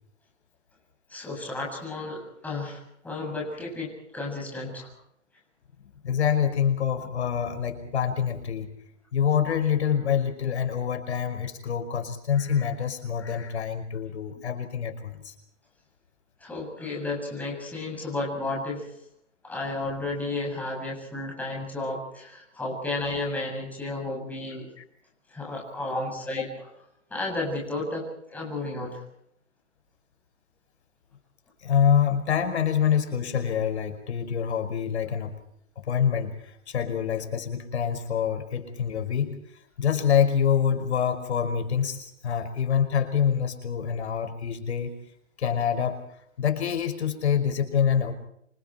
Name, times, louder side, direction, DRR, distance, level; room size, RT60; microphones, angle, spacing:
voice 1, 1.1-4.9 16.4-18.9 19.4-24.7 25.3-26.5 27.1-29.0, left 2 dB, 5° left, -1 dB, 7.5 m, -32 dB
voice 2, 6.0-8.7 9.1-15.3 23.1-23.2 24.8-24.9 26.4-26.5 31.6-35.4 35.8-39.4 39.8-45.0 45.4-48.1, left 8 dB, 65° left, 7 dB, 5.5 m, -26 dB
28.5 x 27.0 x 4.5 m, 0.71 s
hypercardioid pair, 165°, 36 cm